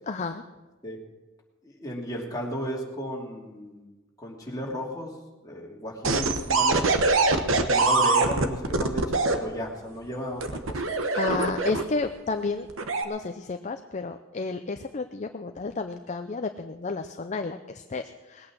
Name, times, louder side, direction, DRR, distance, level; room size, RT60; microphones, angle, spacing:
voice 1, 0.1-0.4 11.1-12.7 13.0-18.5, left 4 dB, 35° left, 7 dB, 0.6 m, -31 dB
voice 2, 1.6-3.9 4.2-5.1 5.4-7.0 7.7-10.8, equal, 20° left, -3 dB, 2.8 m, -34 dB
sound 1, 6.0-9.4 10.4-12.0 12.7-13.0, right 3 dB, 70° right, 1.2 m, -23 dB
20.0 x 8.8 x 6.3 m, 1.1 s
head